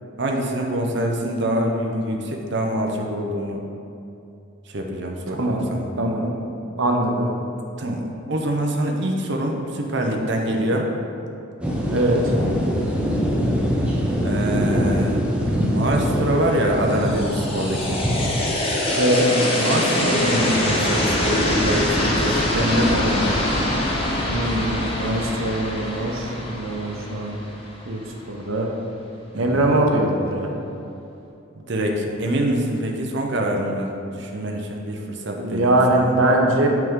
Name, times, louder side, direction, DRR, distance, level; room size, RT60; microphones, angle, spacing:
voice 1, 0.2-3.6 4.7-5.9 7.8-10.9 14.2-15.2 15.5-18.0 19.5-23.4 29.3-29.7 31.6-36.1, right 1 dB, 60° right, 1 dB, 0.7 m, -25 dB
voice 2, 5.3-5.6 6.0-6.4 6.8-7.3 11.9-12.3 18.9-19.4 24.3-27.4 27.9-28.0 28.3-28.7 29.4-30.5 35.4-36.7, right 1 dB, 90° right, 1 dB, 0.9 m, -21 dB
sound 1, 11.6-18.6, equal, 5° right, 0.7 m, -23 dB
sound 2, 16.9-27.9, left 1 dB, 30° left, 0.9 m, -24 dB
6.0 x 5.8 x 3.7 m, 2.8 s
head